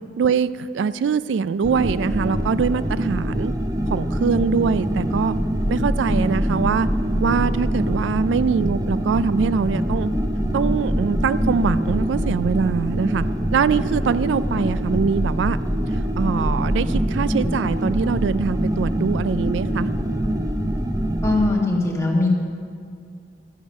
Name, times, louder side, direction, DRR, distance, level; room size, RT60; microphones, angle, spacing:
voice 1, 0.2-3.5 3.9-5.4 5.7-6.9 7.2-10.1 10.5-13.2 13.5-15.6 16.2-19.9, right 6 dB, 90° right, 16 dB, 0.3 m, -23 dB
sound 1, 1.6-21.5, equal, 20° right, 0.6 m, -24 dB
voice 2, 21.2-22.3, left 2 dB, 15° left, -1 dB, 1.6 m, -20 dB
12.5 x 10.0 x 5.3 m, 2.2 s
head